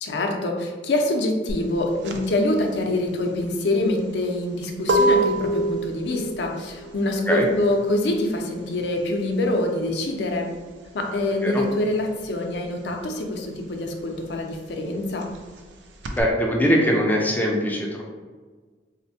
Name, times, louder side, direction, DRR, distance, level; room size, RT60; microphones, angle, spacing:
voice 1, 0.0-10.5 10.9-15.3, left 1 dB, 70° left, 2 dB, 0.5 m, -25 dB
sound 1, 1.5-11.7 12.0-16.2, right 1 dB, 85° right, 0.4 m, -27 dB
voice 2, 16.1-18.0, equal, 10° left, -1 dB, 0.4 m, -21 dB
4.2 x 2.1 x 2.7 m, 1.4 s
head